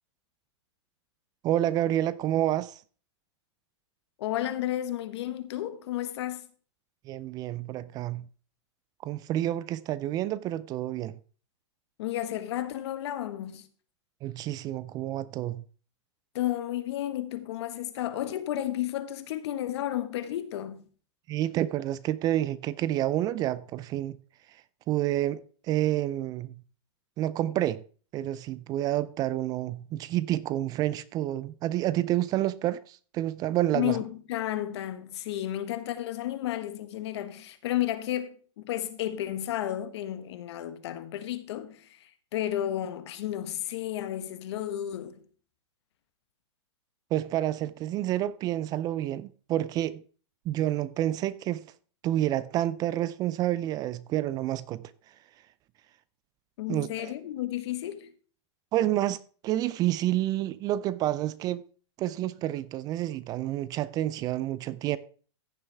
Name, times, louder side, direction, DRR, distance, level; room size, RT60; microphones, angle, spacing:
voice 1, 1.4-2.8 7.1-8.3 9.0-11.1 14.2-15.6 21.3-24.2 24.9-26.5 27.2-27.8 28.1-33.9 47.1-50.0 50.5-51.6 52.0-54.9 56.7-57.1 58.7-61.6 62.0-65.0, right 13 dB, 25° right, 0.3 m, -29 dB
voice 2, 4.2-6.5 12.0-13.7 16.3-20.8 33.7-45.2 56.6-58.1, left 12 dB, 60° left, 1.3 m, -32 dB
15.0 x 6.8 x 3.4 m
hypercardioid pair, 135°, 15 cm